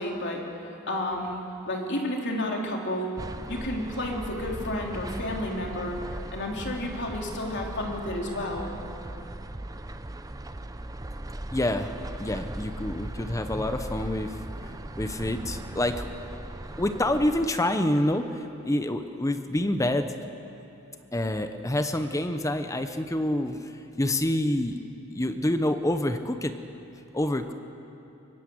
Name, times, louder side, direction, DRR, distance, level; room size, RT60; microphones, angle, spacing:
voice 1, 0.0-3.1 3.5-6.0 6.3-8.7, left 1 dB, 50° left, 0 dB, 3.2 m, -31 dB
sound 1, 3.2-17.5, right 1 dB, 15° right, 0.7 m, -38 dB
voice 2, 11.5-11.9 12.2-14.3 14.6-16.1 16.8-18.3 18.6-20.1 21.1-23.7 24.0-24.8 25.1-26.5 27.1-27.5, left 1 dB, 15° left, 8 dB, 0.8 m, -27 dB
23.5 x 20.5 x 7.9 m, 3.0 s
head